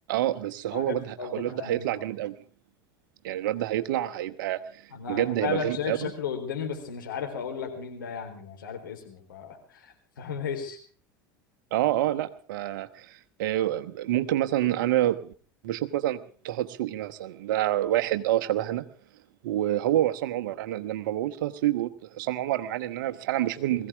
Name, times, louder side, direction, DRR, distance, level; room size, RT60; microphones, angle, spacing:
voice 1, 0.1-2.3 3.2-4.8 5.1-6.1 11.7-15.3 15.6-18.8 19.4-23.9, right 13 dB, 70° right, 10 dB, 1.2 m, -28 dB
voice 2, 0.7-1.9 4.9-10.8, left 7 dB, 80° left, 3 dB, 3.9 m, -35 dB
21.0 x 16.0 x 3.6 m, 0.43 s
hypercardioid pair, 75°, 11 cm